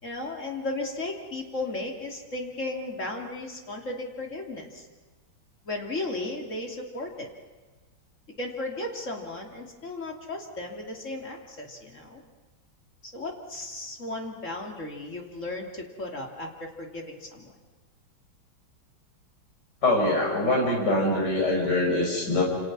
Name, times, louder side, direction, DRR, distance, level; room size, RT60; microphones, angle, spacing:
voice 1, 0.0-4.9 5.6-7.3 8.4-12.2 13.1-17.5, left 2 dB, 35° left, 1 dB, 3.1 m, -35 dB
voice 2, 19.8-22.4, left 2 dB, 50° left, 0 dB, 5.8 m, -23 dB
28.5 x 28.0 x 6.1 m, 1.3 s
omnidirectional pair, 2.2 m